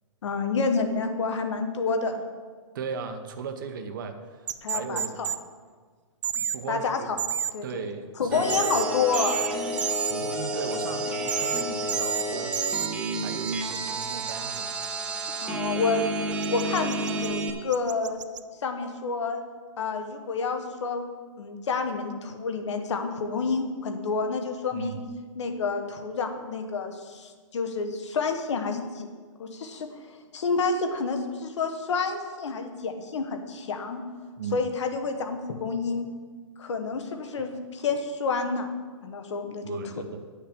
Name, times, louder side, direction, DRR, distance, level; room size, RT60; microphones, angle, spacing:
voice 1, 0.2-2.2 4.6-5.3 6.7-7.2 7.5-7.8 8.2-9.4 15.4-16.0 16.5-18.2 18.6-19.4 19.8-21.1 21.4-25.0 25.4-29.1 29.4-34.0 34.5-36.1 36.6-38.7 39.0-39.9, left 4 dB, 60° left, 6 dB, 1.3 m, -29 dB
voice 2, 2.7-5.4 6.3-7.1 7.6-8.7 10.1-12.6 13.2-14.7 24.7-25.0 34.4-34.6 39.6-40.2, right 6 dB, 40° right, 7 dB, 0.8 m, -37 dB
sound 1, 4.5-5.4 6.2-6.6 7.2-7.5 8.5-8.8 9.1-9.5 9.8-10.1 11.3-11.6 11.9-12.2 12.5-12.9 13.5-14.9 16.4-17.3 17.7-18.4, right 9 dB, 65° right, 0.6 m, -29 dB
sound 2, 8.3-17.5, right 1 dB, 5° right, 0.3 m, -31 dB
10.0 x 6.6 x 5.2 m, 1.5 s
hypercardioid pair, 165°, 17 cm